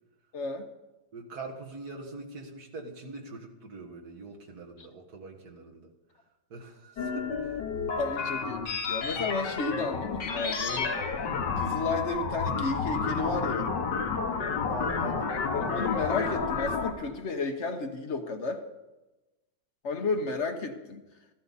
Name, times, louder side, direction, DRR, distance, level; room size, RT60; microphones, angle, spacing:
voice 1, 0.3-0.7 8.0-11.0 11.6-13.7 15.5-18.6 19.8-21.0, left 3 dB, 45° left, 5 dB, 1.0 m, -32 dB
voice 2, 1.1-5.9 6.5-7.6 14.6-15.3, right 3 dB, 55° right, 1 dB, 2.0 m, -43 dB
sound 1, 7.0-16.9, left 5 dB, 70° left, 1.8 m, -30 dB
14.0 x 13.0 x 4.1 m, 1.1 s
omnidirectional pair, 2.0 m